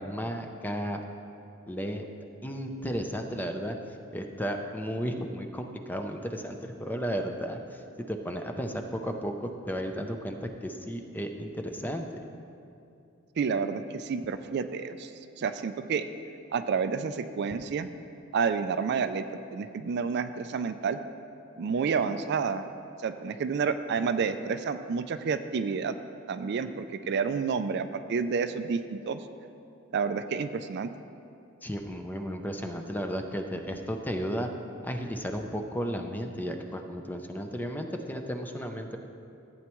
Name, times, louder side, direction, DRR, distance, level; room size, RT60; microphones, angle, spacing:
voice 1, 0.0-1.0 1.7-2.0 2.4-3.8 4.1-7.8 8.1-12.1 31.6-34.5 34.8-39.0, equal, 10° left, 4 dB, 0.5 m, -34 dB
voice 2, 13.4-15.1 15.4-16.0 16.5-17.9 18.3-19.2 19.5-21.0 21.6-22.6 23.0-26.0 26.3-29.3 29.9-30.9, right 5 dB, 55° right, 10 dB, 0.4 m, -29 dB
14.5 x 8.6 x 3.1 m, 2.6 s
head